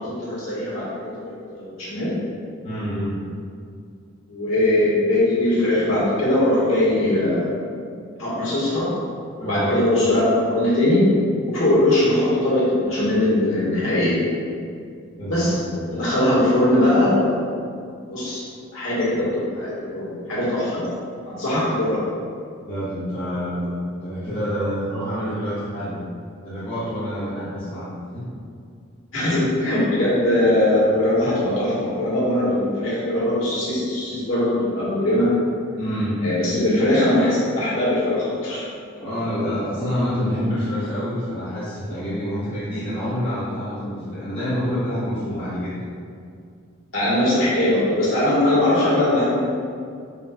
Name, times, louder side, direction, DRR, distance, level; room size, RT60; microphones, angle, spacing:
voice 1, 0.0-2.1 4.3-7.5 8.2-8.9 9.4-11.0 11.5-14.2 15.3-15.5 15.9-17.3 18.1-18.4 18.7-20.8 21.3-22.1 29.1-35.3 36.2-38.7 46.9-49.4, left 1 dB, 75° left, -8 dB, 1.5 m, -20 dB
voice 2, 2.6-3.2 9.4-9.7 15.2-15.8 22.7-26.0 26.4-28.3 35.8-36.2 38.9-45.8, equal, 25° left, -13 dB, 0.9 m, -27 dB
4.2 x 2.3 x 3.5 m, 2.3 s
head